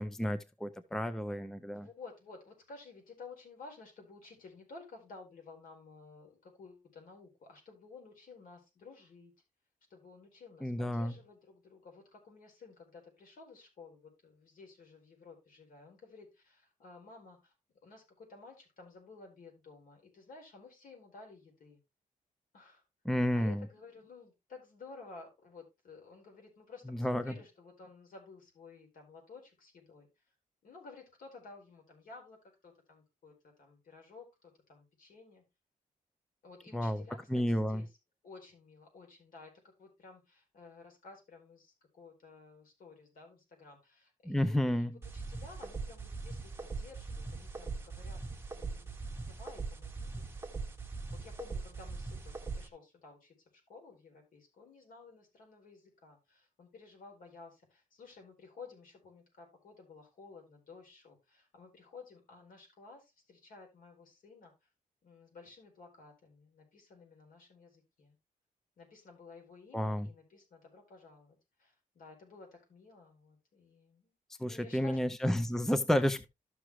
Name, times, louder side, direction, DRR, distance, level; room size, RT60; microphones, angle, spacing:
voice 1, 0.0-1.9 10.6-11.1 23.1-23.7 27.0-27.3 36.7-37.0 37.3-37.8 44.2-44.9 69.7-70.1 74.4-76.3, equal, 5° left, 0.6 m, -31 dB
voice 2, 1.7-9.3 9.9-17.5 17.8-21.8 22.5-22.8 23.3-30.1 30.6-35.4 36.4-37.9 38.2-44.9 45.1-50.4 51.1-53.4 53.7-64.5 65.0-68.2 68.8-74.1 74.4-75.0, left 4 dB, 75° left, 4.5 m, -54 dB
sound 1, 45.0-52.7, right 3 dB, 15° right, 1.1 m, -41 dB
12.5 x 6.3 x 3.1 m
wide cardioid pair, 135°, 14 cm